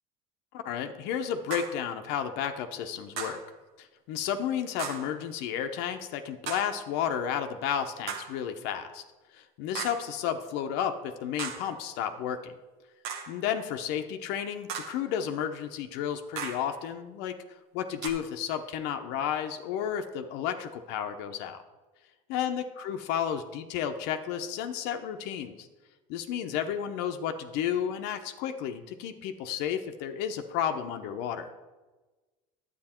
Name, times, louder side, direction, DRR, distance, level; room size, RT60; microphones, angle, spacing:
voice 1, 0.5-3.4 3.8-9.0 9.3-12.5 13.3-21.6 22.3-25.7 26.1-31.5, left 9 dB, 70° left, 7 dB, 0.8 m, -32 dB
sound 1, 1.5-1.9 3.2-3.5 4.8-5.2 6.5-6.8 8.1-8.4 9.7-10.1 11.4-11.8 13.0-13.4 14.7-15.1 16.4-16.7 18.0-18.1, right 7 dB, 65° right, 1.4 m, -37 dB
9.9 x 8.5 x 4.4 m, 1.2 s
supercardioid pair, 100°, 18 cm